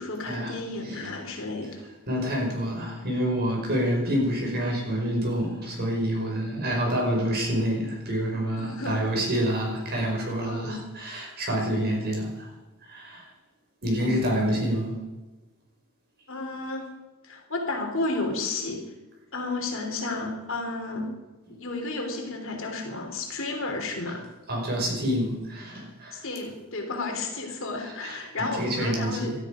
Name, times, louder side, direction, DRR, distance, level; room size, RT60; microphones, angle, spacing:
voice 1, 0.0-1.8 8.6-9.0 10.4-10.8 14.0-14.4 16.3-16.9 17.2-18.8 19.3-21.1 21.5-24.2 26.1-29.3, left 3 dB, 60° left, 2 dB, 3.4 m, -32 dB
voice 2, 2.1-12.5 12.8-13.3 13.8-15.0 21.5-21.6 24.5-26.2 27.8-29.4, equal, 45° right, 0 dB, 5.2 m, -27 dB
18.5 x 13.0 x 5.1 m, 1.1 s
head